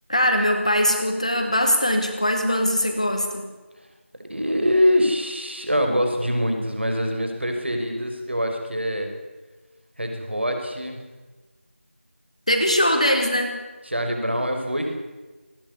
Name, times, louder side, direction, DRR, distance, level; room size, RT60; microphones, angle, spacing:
voice 1, 0.1-3.4 12.5-13.5, equal, 30° left, 4 dB, 2.4 m, -21 dB
voice 2, 4.3-9.1 10.0-11.0 13.8-14.9, equal, 55° right, 4 dB, 5.5 m, -24 dB
20.0 x 17.0 x 9.9 m, 1.2 s
figure-of-eight pair, 180°, 7 cm